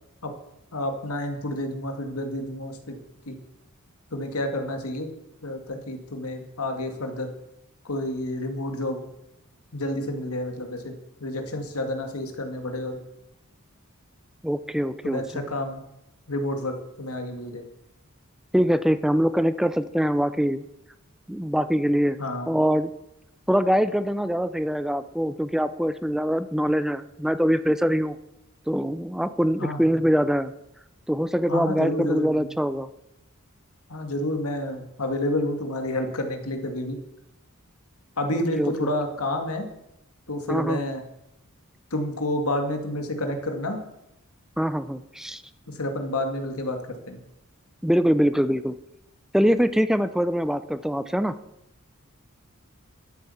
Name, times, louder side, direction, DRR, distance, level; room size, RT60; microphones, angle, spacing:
voice 1, 0.7-3.0 3.3-3.4 4.1-5.1 5.4-7.3 7.8-9.0 9.7-11.0 11.2-13.0 15.0-15.8 16.3-17.7 22.2-22.5 29.6-29.8 31.5-32.5 33.9-37.0 38.2-39.7 40.3-41.0 41.9-43.8 45.7-47.2, left 1 dB, 90° left, 5 dB, 2.1 m, -29 dB
voice 2, 14.4-15.2 18.5-20.6 21.3-22.2 22.5-22.9 23.5-28.2 28.7-30.5 31.1-32.9 38.3-38.7 40.5-40.8 44.6-45.4 47.8-48.8 49.3-51.3, equal, ahead, 13 dB, 0.4 m, -23 dB
12.0 x 8.4 x 7.1 m, 0.85 s
head